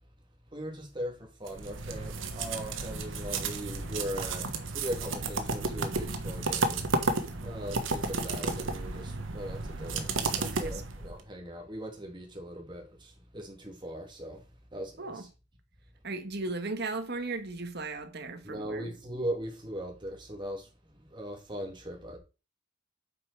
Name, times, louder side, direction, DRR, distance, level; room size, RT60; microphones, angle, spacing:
voice 1, 0.5-4.5 4.7-6.9 7.4-14.4 14.7-15.3 18.4-20.7 20.9-22.2, equal, 25° right, 2.7 m, -39 dB
sound 1, 1.5-11.2, right 3 dB, 85° right, 1.3 m, -33 dB
voice 2, 10.4-10.8 15.0-15.2 16.0-18.8, right 3 dB, 55° right, 1.5 m, -36 dB
8.0 x 5.6 x 4.8 m
head